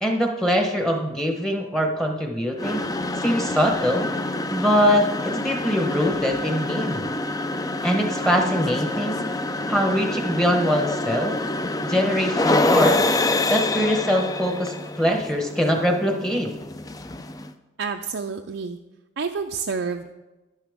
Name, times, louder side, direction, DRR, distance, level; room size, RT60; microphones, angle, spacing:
voice 1, 0.0-2.9 3.2-4.1 4.5-7.1 7.8-9.3 9.7-11.3 11.8-13.1 13.5-16.5, equal, 5° left, 2 dB, 0.9 m, -23 dB
sound 1, 2.6-17.5, left 2 dB, 20° left, 0.4 m, -26 dB
voice 2, 17.8-18.8 19.2-20.1, right 5 dB, 65° right, 3 dB, 0.5 m, -29 dB
10.5 x 9.9 x 3.5 m, 1.1 s
head